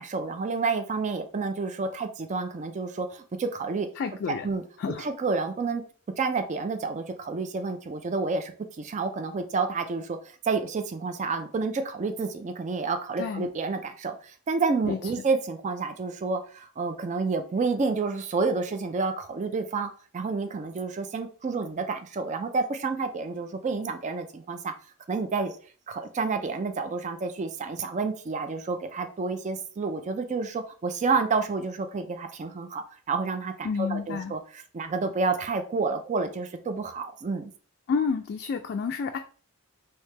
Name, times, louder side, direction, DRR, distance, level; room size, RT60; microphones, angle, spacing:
voice 1, 0.0-3.9 4.4-4.6 5.0-5.8 6.2-10.2 10.4-24.7 25.1-25.5 25.9-37.5, right 4 dB, 35° right, 7 dB, 0.4 m, -29 dB
voice 2, 4.0-4.5 4.8-5.1 13.2-13.5 14.9-15.0 33.6-34.3 37.9-39.2, left 5 dB, 50° left, 4 dB, 0.3 m, -29 dB
3.2 x 2.8 x 3.2 m, 0.40 s
head